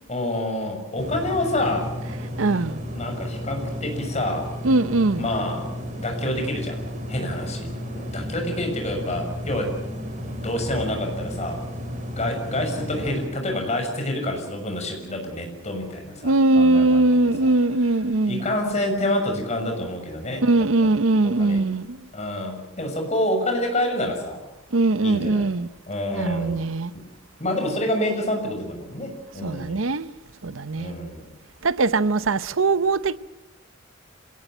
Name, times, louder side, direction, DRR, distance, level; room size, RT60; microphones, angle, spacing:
voice 1, 0.1-1.9 2.9-4.5 5.2-5.7 6.0-6.8 7.1-7.7 8.0-9.8 10.2-11.6 12.2-17.1 17.4-17.5 18.3-20.6 21.4-21.6 22.1-24.4 25.0-25.5 25.9-26.6 27.4-29.8 30.8-31.3, left 1 dB, 35° left, 6.6 m, -27 dB
sound 1, 1.0-13.3, equal, 40° right, 4.5 m, -33 dB
voice 2, 2.4-2.8 4.6-5.3 16.2-18.4 20.4-22.0 24.7-25.7 26.1-26.9 29.4-30.1 30.4-30.9 31.6-33.2, right 2 dB, 80° right, 0.8 m, -21 dB
26.5 x 18.0 x 9.0 m
head